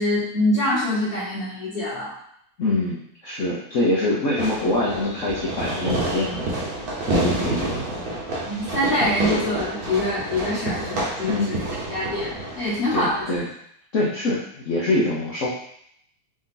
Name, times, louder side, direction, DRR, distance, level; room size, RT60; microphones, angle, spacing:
voice 1, 0.0-2.1 8.5-11.6 11.9-13.3, left 1 dB, 30° left, -13 dB, 1.3 m, -24 dB
voice 2, 2.6-6.6 7.1-8.0 11.2-11.5 12.9-13.5 13.9-15.5, left 2 dB, 75° left, -5 dB, 0.6 m, -24 dB
Fireworks, 4.4-13.4, right 2 dB, 55° right, 1.3 m, -29 dB
4.8 x 2.7 x 3.8 m, 0.71 s
omnidirectional pair, 2.3 m